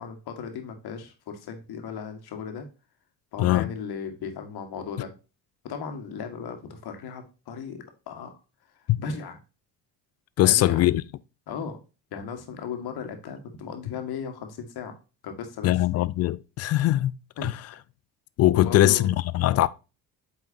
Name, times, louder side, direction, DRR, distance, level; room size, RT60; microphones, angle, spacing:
voice 1, 0.0-2.7 3.3-5.1 5.6-8.4 9.0-9.4 10.4-10.9 11.5-11.8 12.1-15.0 15.2-15.8 17.4-17.5 18.5-19.1, left 6 dB, 50° left, 1.8 m, -36 dB
voice 2, 3.4-3.7 8.9-9.0 10.4-11.0 15.6-17.1 17.4-17.5 18.4-19.7, left 15 dB, 35° left, 0.4 m, -21 dB
8.3 x 5.7 x 2.8 m
figure-of-eight pair, 50°, 50 cm